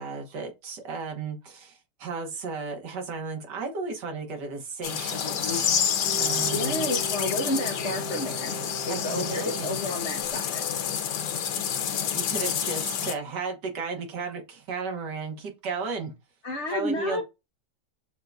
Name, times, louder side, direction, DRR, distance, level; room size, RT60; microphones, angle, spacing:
voice 1, 0.0-5.8 6.2-6.9 8.9-9.8 12.1-16.1 16.7-17.2, right 4 dB, 80° right, 1.8 m, -34 dB
sound 1, 4.8-13.1, left 8 dB, 90° left, 1.4 m, -28 dB
Singing, 6.0-9.9 10.2-10.3, right 7 dB, 40° right, 1.2 m, -39 dB
voice 2, 6.5-8.6 8.8-10.6 16.4-17.2, left 2 dB, 60° left, 0.7 m, -31 dB
6.4 x 2.3 x 2.6 m
omnidirectional pair, 1.8 m